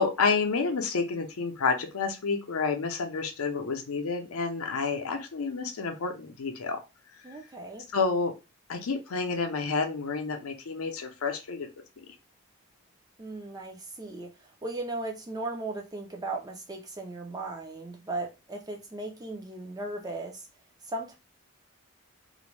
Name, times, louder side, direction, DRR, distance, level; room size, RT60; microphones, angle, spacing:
voice 1, 0.0-6.8 7.9-8.3 8.7-11.7, left 4 dB, 75° left, 0.5 m, -29 dB
voice 2, 7.2-7.9 13.2-20.5 20.8-21.2, right 2 dB, 15° right, 0.4 m, -37 dB
2.5 x 2.1 x 3.1 m
head